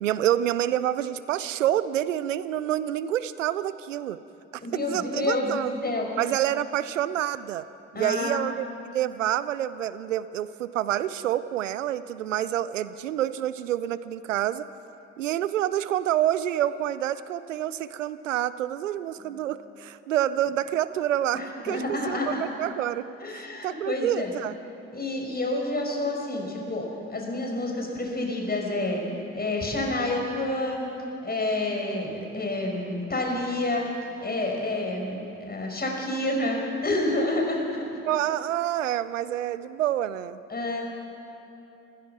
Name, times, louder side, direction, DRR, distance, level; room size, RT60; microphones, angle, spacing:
voice 1, 0.0-4.2 4.5-4.6 4.9-5.7 6.2-7.7 7.9-14.7 15.2-23.1 23.3-24.5 38.1-40.4, right 12 dB, 85° right, 16 dB, 0.5 m, -27 dB
voice 2, 4.6-6.1 7.9-8.4 19.2-19.4 21.3-22.4 23.2-24.3 24.9-29.0 29.3-30.9 31.2-33.9 34.2-37.9 40.5-40.9, left 2 dB, 25° left, 0 dB, 5.8 m, -29 dB
28.5 x 15.5 x 6.0 m, 2.9 s
figure-of-eight pair, 45°, 37 cm